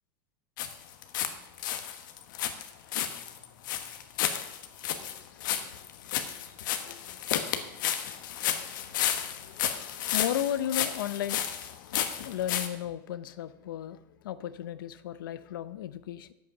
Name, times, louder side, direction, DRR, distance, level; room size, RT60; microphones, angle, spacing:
sound 1, 0.6-1.3 1.6-12.7, left 10 dB, 70° left, 1.2 m, -32 dB
voice 1, 5.0-14.0 14.2-16.3, left 11 dB, 90° left, 15 dB, 0.6 m, -37 dB
9.5 x 8.2 x 5.9 m, 0.89 s
supercardioid pair, 150°, 11 cm